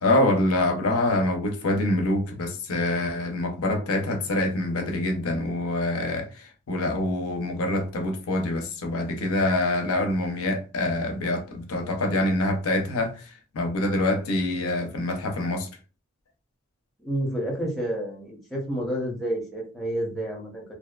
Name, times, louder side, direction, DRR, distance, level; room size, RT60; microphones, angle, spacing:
voice 1, 0.0-13.2 13.5-15.7, left 1 dB, 85° left, 0.5 m, -25 dB
voice 2, 17.0-20.6, right 1 dB, ahead, 0.7 m, -29 dB
2.5 x 2.2 x 2.2 m
head